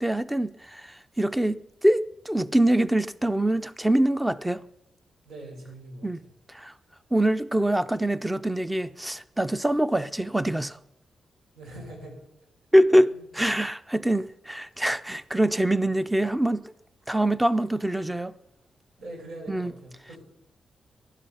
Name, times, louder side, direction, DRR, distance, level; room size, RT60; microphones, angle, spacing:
voice 1, 0.0-4.6 6.0-6.2 6.5-6.7 7.1-10.8 12.7-16.6 17.1-18.3 19.5-19.7, right 1 dB, 5° right, 0.5 m, -24 dB
voice 2, 5.2-6.1 11.5-12.2 13.1-13.3 19.0-20.2, right 1 dB, 85° right, 6.1 m, -42 dB
16.0 x 11.5 x 5.7 m
wide cardioid pair, 125°, 0 cm